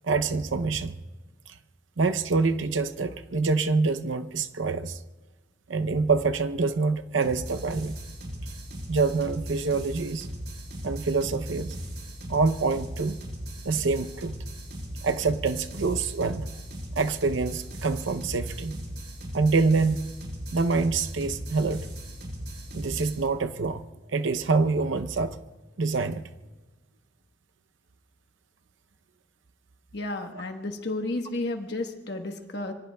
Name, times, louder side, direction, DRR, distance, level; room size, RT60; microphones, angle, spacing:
voice 1, 0.0-1.0 2.0-5.0 5.7-7.9 8.9-10.3 10.8-11.8 12.3-13.2 13.6-14.3 15.0-16.5 16.9-18.8 19.3-20.1 20.5-21.9 22.7-23.8 24.1-25.4 25.8-26.2, right 4 dB, 90° right, 9 dB, 0.7 m, -26 dB
sound 1, 7.2-23.2, equal, 60° right, 6.4 m, -38 dB
voice 2, 29.9-32.7, left 2 dB, 60° left, 4 dB, 1.2 m, -32 dB
26.0 x 24.0 x 2.3 m, 1.2 s
head